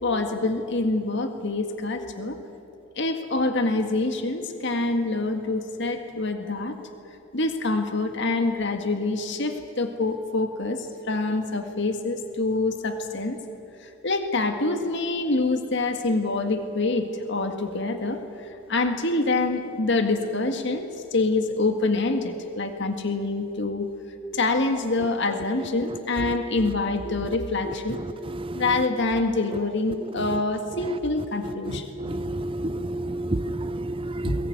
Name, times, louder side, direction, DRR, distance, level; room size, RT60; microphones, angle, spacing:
voice 1, 0.0-2.4 3.0-6.8 7.3-13.4 13.8-23.9 24.3-28.0 28.5-31.9 34.3-34.4, left 2 dB, 55° left, 1.9 m, -26 dB
voice 2, 32.0-34.3, right 1 dB, 25° right, 0.6 m, -29 dB
21.5 x 21.5 x 9.6 m
head